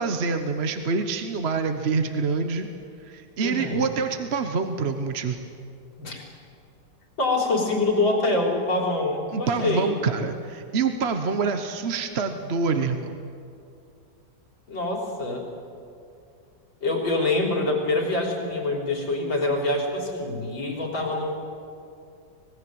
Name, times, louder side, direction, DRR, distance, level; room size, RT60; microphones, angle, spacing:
voice 1, 0.0-2.7 3.0-5.5 9.3-13.2, right 4 dB, 45° right, 7 dB, 1.0 m, -26 dB
voice 2, 3.4-3.9 6.0-6.2 7.2-9.9 14.7-15.5 16.8-21.3, left 2 dB, 90° left, 0 dB, 4.4 m, -25 dB
25.0 x 20.0 x 7.9 m, 2.5 s
omnidirectional pair, 2.0 m